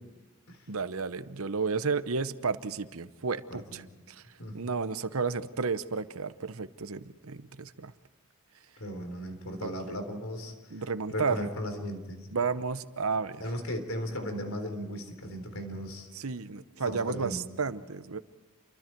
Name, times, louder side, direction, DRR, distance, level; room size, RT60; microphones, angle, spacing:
voice 1, 0.7-4.2 4.5-7.9 9.6-10.0 10.7-11.4 12.3-13.4 16.1-18.2, right 5 dB, 80° right, 13 dB, 0.9 m, -32 dB
voice 2, 3.5-3.9 4.4-4.5 8.8-12.3 13.4-16.1 16.9-17.4, equal, 70° left, 6 dB, 3.8 m, -36 dB
29.0 x 24.0 x 4.6 m, 1.2 s
head